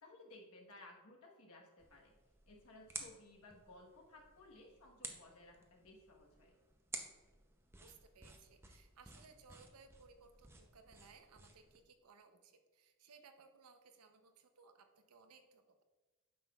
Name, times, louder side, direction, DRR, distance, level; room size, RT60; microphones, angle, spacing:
voice 1, 0.0-2.1 2.5-6.6, left 2 dB, 70° left, 0 dB, 1.3 m, -59 dB
sound 1, 1.8-11.8, right 3 dB, 10° right, 0.6 m, -54 dB
voice 2, 7.8-15.8, right 5 dB, 85° right, 7 dB, 0.7 m, -63 dB
9.2 x 6.1 x 2.4 m, 1.3 s
head